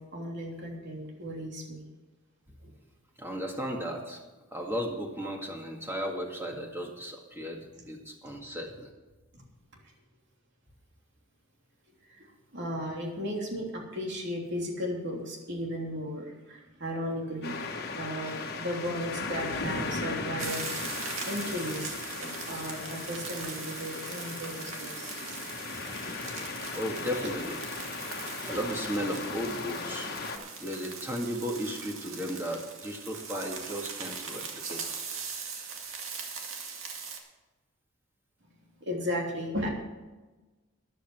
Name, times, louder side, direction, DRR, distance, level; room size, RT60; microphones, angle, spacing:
voice 1, 0.0-1.8 2.6-2.7 6.6-6.7 7.7-7.8 9.3-9.4 12.1-12.3 12.5-17.6 17.9-20.7 21.2-21.9 22.2-25.4 26.2-26.7 28.5-28.6 38.8-39.7, equal, 55° right, 0 dB, 3.1 m, -35 dB
voice 2, 3.2-4.2 4.5-8.9 18.2-18.5 25.9-26.4 26.8-27.6 28.4-30.2 30.6-35.0, equal, 10° right, 1 dB, 2.1 m, -35 dB
sound 1, 17.4-30.4, left 4 dB, 50° left, 1.4 m, -37 dB
sound 2, 20.4-37.2, right 5 dB, 70° right, 2.2 m, -40 dB
13.5 x 11.0 x 4.6 m, 1.2 s
head